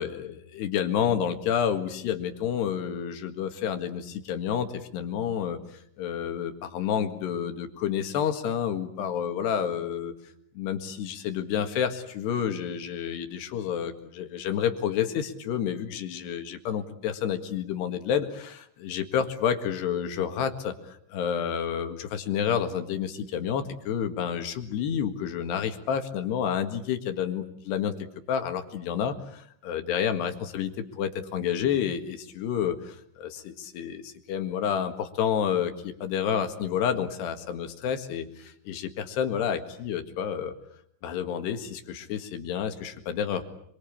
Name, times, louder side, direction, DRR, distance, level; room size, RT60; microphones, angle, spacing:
voice 1, 0.0-5.6 6.0-10.1 10.6-27.9 28.3-40.6 41.0-43.4, left 8 dB, 65° left, 7 dB, 3.7 m, -29 dB
28.5 x 23.5 x 8.7 m, 0.70 s
omnidirectional pair, 5.5 m